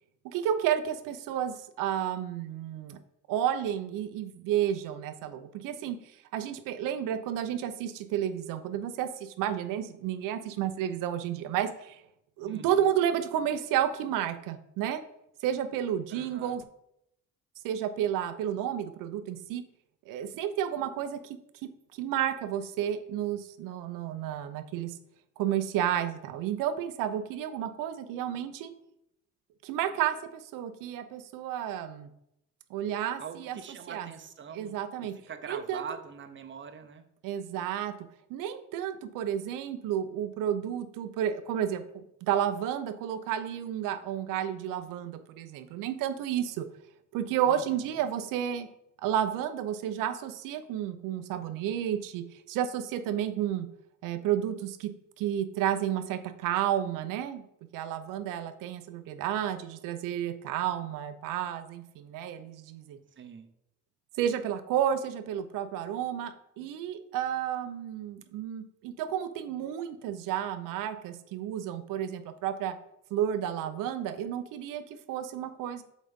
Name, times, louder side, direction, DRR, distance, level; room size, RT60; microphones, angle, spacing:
voice 1, 0.2-3.0 3.3-12.0 12.4-15.0 15.4-16.6 17.6-19.6 20.1-21.4 21.9-25.0 25.4-28.7 29.6-32.1 32.7-33.6 33.9-34.1 34.5-35.1 35.5-35.8 37.2-37.9 38.3-46.7 47.1-48.7 49.0-53.7 54.0-54.9 55.2-57.4 57.7-63.0 64.2-72.7 73.1-75.8, right 10 dB, 80° right, 10 dB, 0.7 m, -31 dB
voice 2, 12.4-12.9 16.1-16.6 33.2-37.0 47.5-48.0 63.2-63.5, right 7 dB, 35° right, 8 dB, 0.9 m, -44 dB
7.4 x 4.1 x 3.6 m, 0.80 s
supercardioid pair, 80°, 32 cm